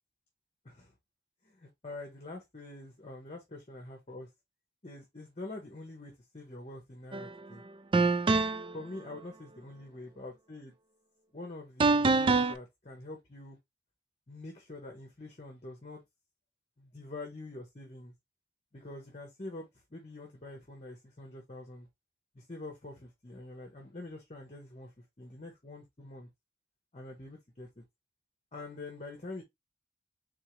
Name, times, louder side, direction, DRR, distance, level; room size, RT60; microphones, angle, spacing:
voice 1, 1.4-3.4 3.7-4.3 4.8-7.6 8.7-10.7 11.3-13.6 14.3-16.0 16.8-18.1 18.7-21.9 22.3-24.9 25.2-26.3 26.9-27.8 28.5-29.4, left 2 dB, 35° left, 1.1 m, -45 dB
sound 1, 7.1-7.3 7.9-8.7 11.8-12.5, right 3 dB, 30° right, 0.4 m, -25 dB
3.9 x 3.6 x 3.0 m
head